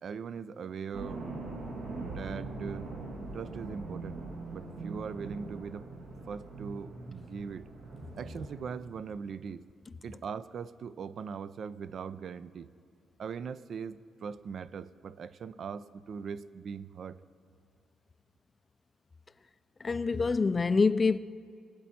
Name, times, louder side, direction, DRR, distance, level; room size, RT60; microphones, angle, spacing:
voice 1, 0.0-1.3 2.0-2.9 3.3-5.9 6.3-7.7 8.2-9.7 10.0-12.7 13.2-17.2, right 6 dB, 55° right, 0.4 m, -40 dB
sound 1, 0.9-8.7, right 2 dB, 75° right, 2.1 m, -42 dB
voice 2, 19.8-21.2, left 4 dB, 30° left, 0.3 m, -25 dB
22.5 x 8.4 x 4.3 m
cardioid pair, 90°, 0 cm